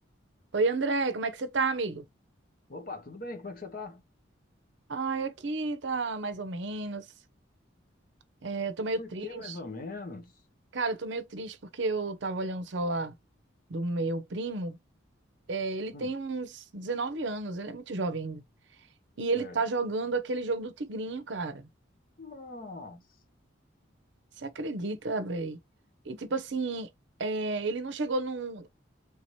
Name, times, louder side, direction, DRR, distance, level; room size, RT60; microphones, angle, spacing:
voice 1, 0.5-2.0 4.9-7.1 8.4-9.5 10.7-13.1 13.7-14.8 15.5-18.4 19.2-21.7 24.4-25.6 26.1-26.9 27.2-28.7, right 3 dB, 65° right, 0.6 m, -31 dB
voice 2, 2.7-4.0 8.9-10.4 15.9-16.1 19.3-19.6 22.2-23.0, left 3 dB, 45° left, 0.9 m, -41 dB
3.4 x 2.8 x 3.0 m
head